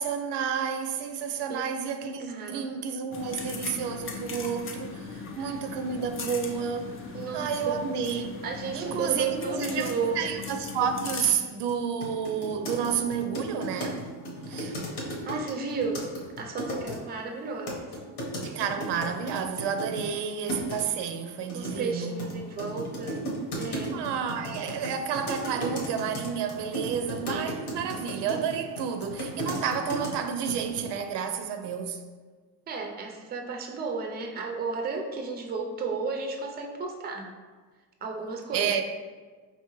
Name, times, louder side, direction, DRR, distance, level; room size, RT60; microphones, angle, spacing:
voice 1, 0.0-6.9 7.3-8.4 8.7-14.0 14.5-14.7 18.4-22.3 23.9-32.0 38.5-38.8, right 7 dB, 85° right, 0.5 m, -30 dB
voice 2, 2.3-2.7 5.4-6.0 7.1-7.8 8.4-10.3 14.5-16.1 16.4-17.8 21.5-23.2 23.5-24.0 32.7-37.3 38.0-38.7, right 4 dB, 25° right, 0.4 m, -33 dB
sound 1, 3.1-11.3, left 4 dB, 35° left, 0.4 m, -38 dB
sound 2, 11.7-11.8 12.0-17.0 17.7-20.1 20.5-20.9 21.5-30.2 30.5-30.9, equal, 70° left, 1.1 m, -35 dB
4.6 x 3.0 x 3.0 m
cardioid pair, 145°, 41 cm